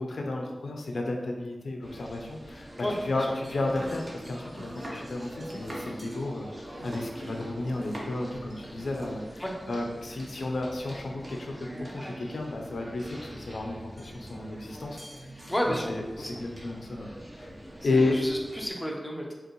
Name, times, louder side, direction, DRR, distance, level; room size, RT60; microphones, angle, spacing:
voice 1, 0.0-11.6 11.9-15.3 15.7-17.1 17.3-17.5 17.8-18.2, left 2 dB, 75° left, 1 dB, 0.5 m, -32 dB
sound 1, 1.8-18.7, equal, 20° right, 0.9 m, -44 dB
voice 2, 2.8-3.3 9.4-9.6 15.5-15.9 16.2-16.3 17.8-19.3, equal, 15° left, -1 dB, 0.6 m, -32 dB
Domestic sounds home sounds, 3.5-8.3 8.6-9.2, right 1 dB, 50° right, 0.9 m, -43 dB
5.2 x 2.5 x 3.0 m, 1.2 s
wide cardioid pair, 100°, 0 cm